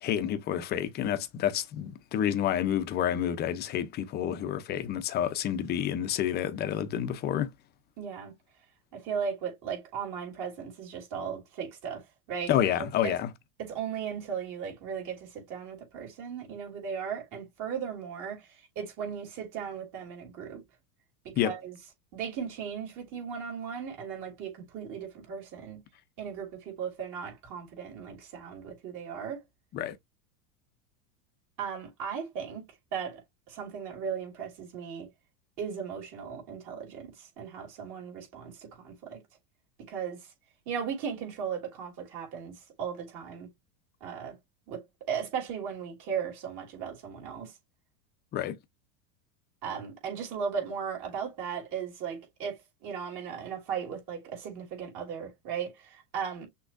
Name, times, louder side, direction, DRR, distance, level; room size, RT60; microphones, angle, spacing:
voice 1, 0.0-7.5 12.5-13.3 21.4-21.5 29.7-29.9 48.3-48.6, left 10 dB, 20° left, 0.6 m, -29 dB
voice 2, 8.0-8.3 8.9-13.1 13.6-20.6 21.2-21.8 22.1-25.8 26.2-29.4 31.6-32.6 32.9-33.2 33.5-35.1 35.6-39.2 39.9-40.3 40.7-43.5 44.0-44.4 44.7-47.5 49.6-56.5, right 7 dB, 40° right, 3.2 m, -37 dB
6.1 x 3.0 x 2.5 m
supercardioid pair, 150°, 45 cm